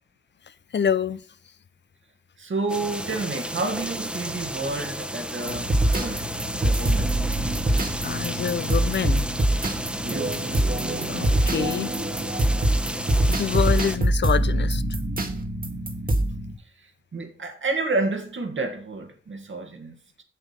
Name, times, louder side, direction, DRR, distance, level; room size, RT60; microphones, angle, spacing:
voice 1, 0.7-1.2 8.0-9.3 11.1-11.9 13.3-14.8, left 7 dB, 60° left, 0.6 m, -26 dB
voice 2, 2.4-7.2 10.0-10.5 17.1-19.9, right 3 dB, 70° right, 1.9 m, -30 dB
sound 1, 2.7-14.0, equal, 5° right, 1.1 m, -33 dB
sound 2, 5.5-16.5, right 1 dB, 45° right, 1.6 m, -24 dB
7.6 x 7.0 x 5.8 m
cardioid pair, 50°, 20 cm